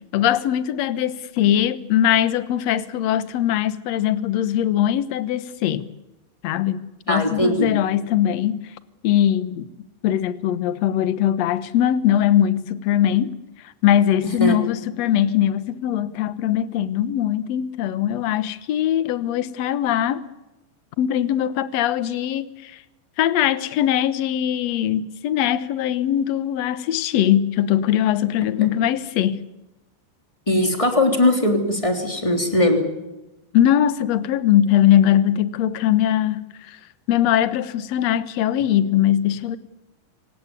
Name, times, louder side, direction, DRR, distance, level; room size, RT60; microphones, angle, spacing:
voice 1, 0.1-5.9 6.4-8.6 9.0-9.7 10.0-13.3 13.8-20.2 21.0-22.8 23.2-29.4 33.5-36.4 36.7-36.8 37.1-39.6, left 11 dB, 65° left, 1.8 m, -21 dB
voice 2, 7.1-7.7 14.4-14.5 30.5-32.8, left 1 dB, 10° left, 3.0 m, -19 dB
25.5 x 18.0 x 9.7 m
omnidirectional pair, 4.3 m